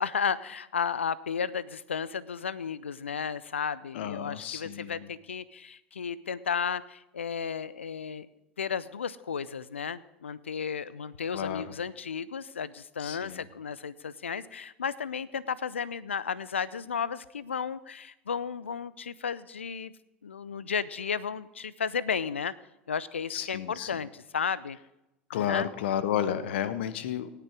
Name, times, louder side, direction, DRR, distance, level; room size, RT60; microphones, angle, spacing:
voice 1, 0.0-8.3 8.6-19.9 20.2-22.5 22.9-24.8 25.3-25.7, left 6 dB, 80° left, 20 dB, 0.5 m, -33 dB
voice 2, 3.9-5.1 11.3-11.8 13.0-13.4 23.3-24.0 25.3-27.3, left 9 dB, 65° left, 13 dB, 1.0 m, -32 dB
18.0 x 6.8 x 4.8 m, 0.88 s
figure-of-eight pair, 75°, 6 cm